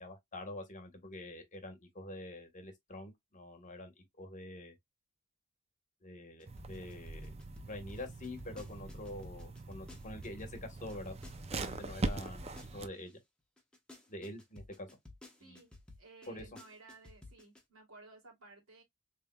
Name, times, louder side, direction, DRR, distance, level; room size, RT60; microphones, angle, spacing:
voice 1, 0.0-4.7 6.0-7.3 7.6-11.1 11.5-13.2 14.1-14.9 15.4-15.6 16.3-16.4, left 1 dB, 35° left, 1.2 m, -46 dB
sound 1, 6.4-13.1 13.6-17.6, left 2 dB, 5° left, 1.0 m, -54 dB
sound 2, 6.5-12.9, right 3 dB, 30° right, 0.5 m, -42 dB
voice 2, 15.4-18.8, right 3 dB, 65° right, 2.6 m, -57 dB
4.2 x 3.4 x 2.2 m
head